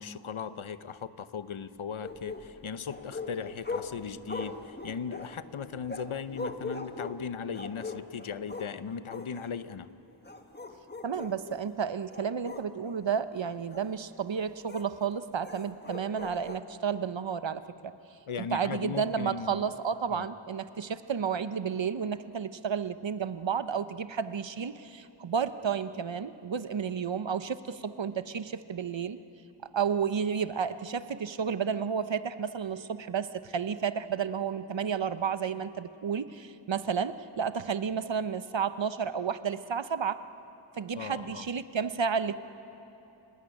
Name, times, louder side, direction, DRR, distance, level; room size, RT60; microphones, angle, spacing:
voice 1, 0.0-9.9 18.3-19.7 20.1-20.3 40.9-41.5, left 6 dB, 75° left, 13 dB, 0.9 m, -38 dB
sound 1, 2.0-8.8 9.1-9.5 10.1-11.7 12.1-13.0 13.7-13.9 14.7-14.9 15.4-16.6, left 3 dB, 20° left, 1.4 m, -41 dB
voice 2, 11.0-17.9 18.4-29.2 29.7-40.2 40.7-42.3, right 7 dB, 65° right, 12 dB, 0.9 m, -32 dB
29.5 x 16.5 x 9.9 m, 3.0 s
wide cardioid pair, 70°, 49 cm